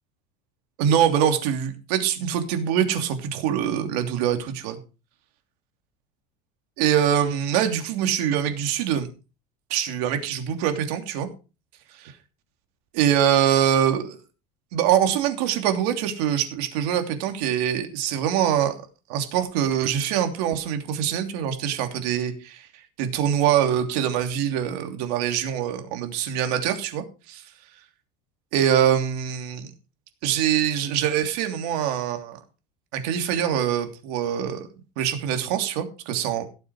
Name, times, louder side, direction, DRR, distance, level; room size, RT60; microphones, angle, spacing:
voice 1, 0.8-4.8 6.8-9.1 9.7-11.3 12.0-12.1 12.9-14.2 14.7-18.7 19.1-22.7 23.0-27.4 28.5-29.7 30.2-32.4 32.9-34.7 35.0-36.4, right 9 dB, 75° right, 6 dB, 3.1 m, -24 dB
17.5 x 7.2 x 4.9 m, 0.32 s
cardioid pair, 160°, 20 cm